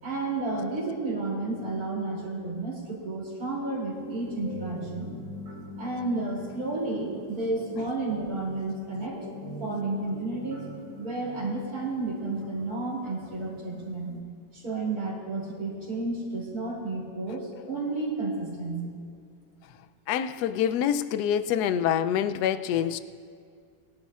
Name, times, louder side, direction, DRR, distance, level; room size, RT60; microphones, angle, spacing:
voice 1, 0.0-5.1 5.8-9.2 9.6-10.6 11.0-14.1 14.5-18.9, right 2 dB, 55° right, -4 dB, 3.4 m, -31 dB
sound 1, 3.9-14.2, equal, 75° right, 3.4 m, -44 dB
voice 2, 20.1-23.0, left 9 dB, 75° left, 12 dB, 1.0 m, -26 dB
22.0 x 11.5 x 2.4 m, 2.2 s
omnidirectional pair, 1.9 m